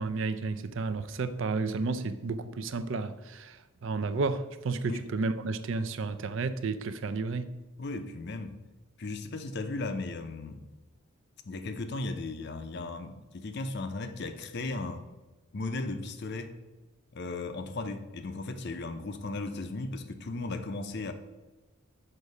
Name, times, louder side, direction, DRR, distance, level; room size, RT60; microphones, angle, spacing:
voice 1, 0.0-7.5, right 3 dB, 60° right, 0.4 m, -32 dB
voice 2, 7.8-8.6 9.0-10.7 11.4-15.1 15.5-16.5 17.1-21.1, left 2 dB, 50° left, 0.6 m, -36 dB
6.5 x 4.7 x 5.4 m
head